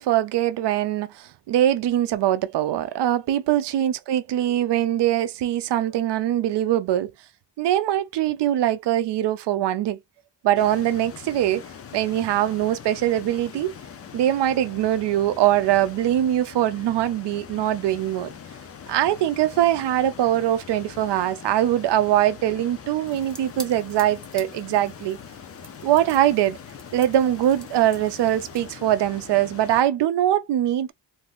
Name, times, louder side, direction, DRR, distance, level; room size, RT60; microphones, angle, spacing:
voice 1, 0.0-7.1 7.6-10.0 10.4-11.6 11.9-13.7 14.1-18.3 18.9-25.2 25.8-26.6 26.9-30.9, right 12 dB, 70° right, 0.5 m, -22 dB
sound 1, 10.5-29.8, left 7 dB, 35° left, 0.4 m, -42 dB
sound 2, 23.0-28.7, right 1 dB, ahead, 0.7 m, -46 dB
2.6 x 2.4 x 3.4 m
wide cardioid pair, 130°, 43 cm